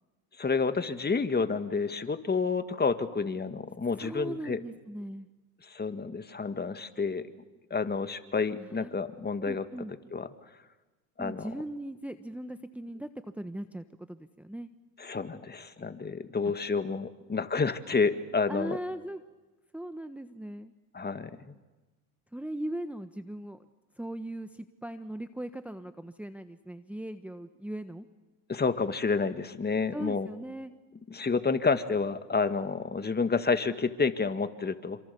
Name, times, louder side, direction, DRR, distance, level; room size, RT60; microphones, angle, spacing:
voice 1, 0.4-4.6 5.7-7.3 7.7-9.6 10.1-10.3 11.2-11.5 15.0-18.8 20.9-21.3 28.5-30.3 31.1-35.0, left 4 dB, 20° left, 10 dB, 2.0 m, -29 dB
voice 2, 4.0-5.3 8.6-9.0 9.4-9.9 11.2-14.7 18.5-19.2 19.7-20.7 22.3-23.6 24.0-28.1 29.9-30.7, right 1 dB, 5° right, 9 dB, 1.3 m, -39 dB
28.0 x 26.5 x 7.1 m, 1.1 s
supercardioid pair, 85°, 43 cm